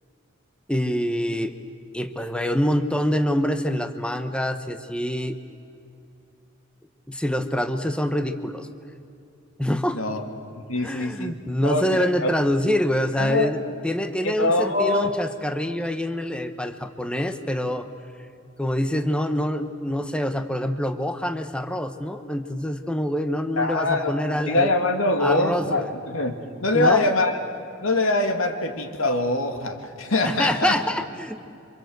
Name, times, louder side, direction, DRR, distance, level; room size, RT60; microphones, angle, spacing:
voice 1, 0.7-1.5 1.9-5.4 7.1-8.7 9.6-10.0 10.8-17.9 18.6-24.7 25.2-25.9 26.7-27.0 30.2-31.4, equal, 5° left, 8 dB, 1.0 m, -25 dB
voice 2, 9.9-10.2 10.5-12.3 13.2-13.5 14.2-15.1 23.6-24.1 24.5-27.4 27.8-30.7, left 2 dB, 85° left, 5 dB, 2.6 m, -23 dB
27.5 x 25.5 x 8.0 m, 2.6 s
head